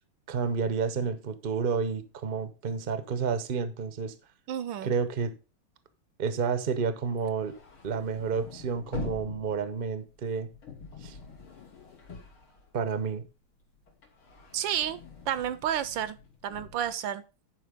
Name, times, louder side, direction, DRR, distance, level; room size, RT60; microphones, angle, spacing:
voice 1, 0.3-4.1 4.8-5.3 6.2-7.5 7.8-10.5 11.0-11.1 12.7-13.3, right 5 dB, 50° right, 12 dB, 0.6 m, -30 dB
voice 2, 4.5-4.9 14.5-15.0 15.3-16.2 16.4-17.2, right 10 dB, 75° right, 15 dB, 1.3 m, -30 dB
sound 1, 7.1-13.2 13.6-16.9, left 5 dB, 85° left, 3.2 m, -45 dB
10.5 x 5.0 x 5.1 m, 0.33 s
omnidirectional pair, 2.3 m